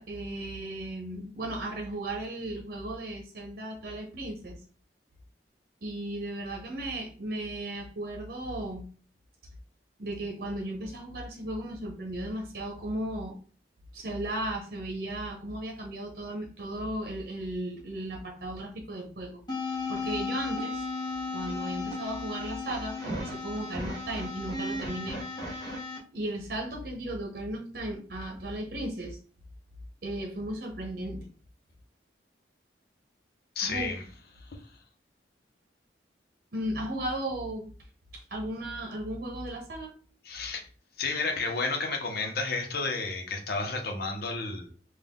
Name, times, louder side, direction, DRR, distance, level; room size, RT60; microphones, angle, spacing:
voice 1, 0.0-4.6 5.8-8.9 10.0-13.4 13.9-20.8 21.3-25.2 25.5-25.6 26.1-29.2 30.0-31.3 33.6-33.9 36.5-37.7 38.1-40.0, right 1 dB, 55° right, 1 dB, 0.9 m, -35 dB
sound 1, 19.5-26.0, left 3 dB, 25° left, 1.2 m, -35 dB
voice 2, 33.6-34.0 34.5-34.6 40.2-40.6 41.0-44.7, left 3 dB, 60° left, 2 dB, 1.0 m, -31 dB
4.2 x 2.5 x 3.6 m, 0.41 s
head